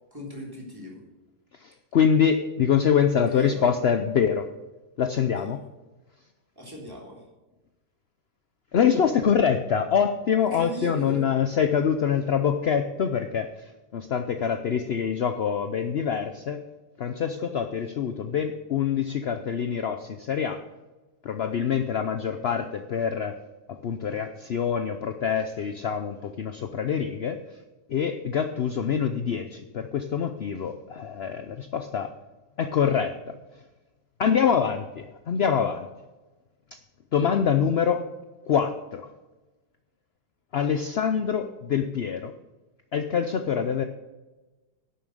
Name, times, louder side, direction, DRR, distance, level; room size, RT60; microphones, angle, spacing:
voice 1, 0.1-1.0 3.3-3.7 5.4-5.6 6.6-7.3 10.5-11.3, equal, 10° right, -3 dB, 3.5 m, -38 dB
voice 2, 1.6-4.5 5.0-5.6 8.7-16.6 17.0-20.6 21.2-23.4 23.7-27.6 27.9-32.1 32.6-33.1 34.2-35.9 37.1-38.0 38.5-39.1 40.5-42.3 42.9-43.8, left 7 dB, 60° left, 7 dB, 0.6 m, -25 dB
11.5 x 7.1 x 6.5 m, 1.1 s
omnidirectional pair, 1.8 m